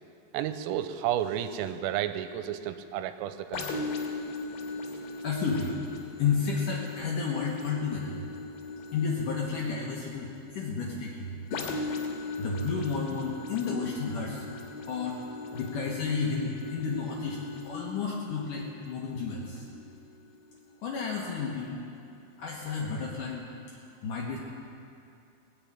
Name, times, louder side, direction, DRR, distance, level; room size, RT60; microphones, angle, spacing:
voice 1, 0.3-3.8, right 11 dB, 85° right, 10 dB, 3.3 m, -32 dB
sound 1, 3.5-21.1 21.6-21.7, left 3 dB, 70° left, 3.2 m, -39 dB
voice 2, 5.0-5.7 6.2-8.2 8.9-11.4 12.1-14.5 14.8-19.6 20.8-21.9 22.4-24.4, left 5 dB, 90° left, -3 dB, 1.8 m, -32 dB
18.5 x 7.2 x 8.8 m, 2.5 s
omnidirectional pair, 5.9 m